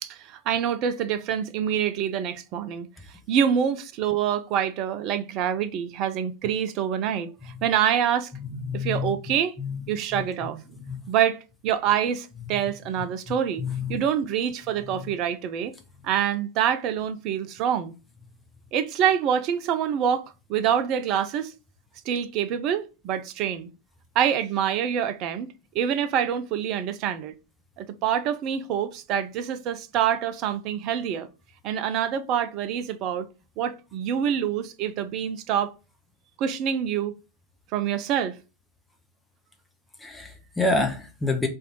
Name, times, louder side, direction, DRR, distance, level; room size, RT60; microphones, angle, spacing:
voice 1, 0.0-2.9 3.3-8.3 8.7-9.5 9.9-10.6 11.1-15.7 16.0-17.9 18.7-21.5 22.1-23.7 24.2-27.3 27.8-31.3 31.6-33.3 33.6-35.7 36.4-37.1 37.7-38.4, right 9 dB, 40° right, 0.4 m, -26 dB
voice 2, 8.5-9.1 9.6-9.8 10.1-10.2 10.9-11.0 13.6-14.0 40.0-41.5, left 3 dB, 5° left, 0.7 m, -27 dB
3.2 x 2.5 x 4.3 m
figure-of-eight pair, 90°, 0 cm